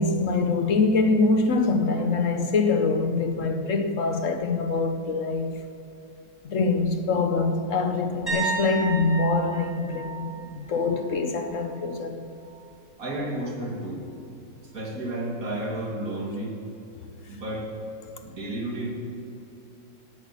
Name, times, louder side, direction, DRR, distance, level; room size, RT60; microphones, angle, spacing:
voice 1, 0.0-5.5 6.4-12.2 18.1-18.2, left 3 dB, 55° left, 0.9 m, -24 dB
sound 1, 8.3-12.0 12.3-12.7 15.6-15.7, right 4 dB, 10° left, 3.4 m, -34 dB
voice 2, 13.0-14.0 14.7-16.6 17.3-17.7 18.2-18.9, right 1 dB, 45° right, 2.8 m, -32 dB
18.0 x 8.4 x 6.9 m
omnidirectional pair, 2.1 m